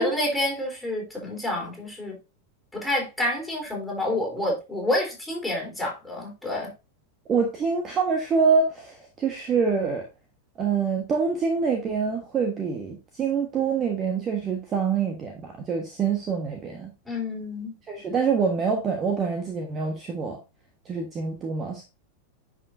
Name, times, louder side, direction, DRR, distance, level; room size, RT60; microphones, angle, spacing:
voice 1, 0.0-2.2 2.7-6.7 17.1-17.8, left 1 dB, ahead, 4.0 m, -28 dB
voice 2, 7.3-10.0 10.6-16.9 17.9-20.4 20.8-21.8, right 5 dB, 25° right, 1.4 m, -25 dB
10.5 x 5.5 x 2.7 m
figure-of-eight pair, 90°, 0 cm